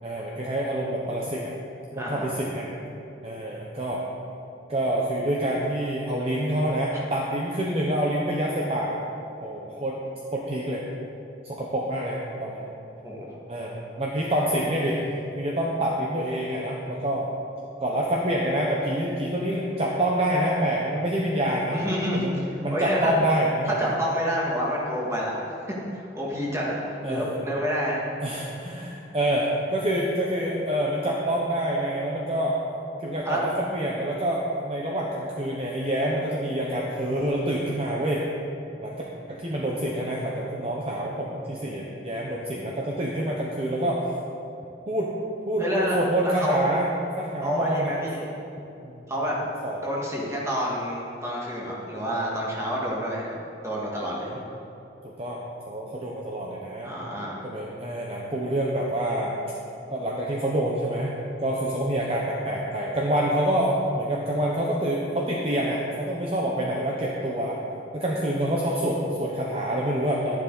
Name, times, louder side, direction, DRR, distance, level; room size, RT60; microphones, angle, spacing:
voice 1, 0.0-1.5 1.9-2.7 3.2-4.0 4.7-9.0 9.4-10.0 10.3-10.8 11.4-12.7 13.5-15.0 15.4-17.3 17.8-21.8 22.1-23.9 27.0-27.4 28.2-32.6 33.0-38.2 38.8-39.0 39.3-44.1 44.9-45.1 45.5-45.6 45.9-46.9 47.2-47.9 48.8-49.1 49.6-49.8 54.3-54.4 55.2-56.9 57.4-59.4 59.9-61.1 61.4-67.6 67.9-70.4, right 1 dB, 35° right, -3 dB, 1.0 m, -27 dB
voice 2, 2.0-2.3 13.0-13.3 21.7-22.2 22.7-23.2 23.7-25.3 25.9-28.0 33.2-33.4 45.6-46.7 47.4-48.2 49.1-49.4 49.8-53.3 53.6-54.3 56.8-57.4, equal, 15° right, -4 dB, 2.1 m, -28 dB
12.0 x 10.5 x 4.1 m, 2.7 s
head